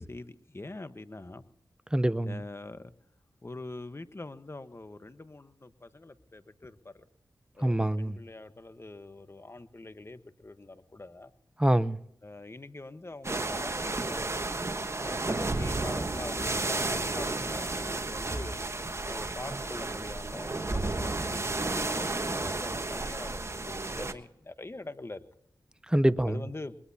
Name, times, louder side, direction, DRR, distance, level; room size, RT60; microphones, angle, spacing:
voice 1, 0.0-1.4 2.3-2.9 3.4-7.0 7.5-11.3 12.2-14.5 15.0-18.6 19.0-25.2 26.2-26.8, left 2 dB, 30° left, 1.2 m, -44 dB
voice 2, 1.9-2.4 7.6-8.2 11.6-12.0 25.9-26.5, right 1 dB, 10° right, 0.8 m, -25 dB
sound 1, 13.2-24.1, right 2 dB, 35° right, 1.3 m, -32 dB
21.5 x 21.0 x 2.8 m
cardioid pair, 40°, 8 cm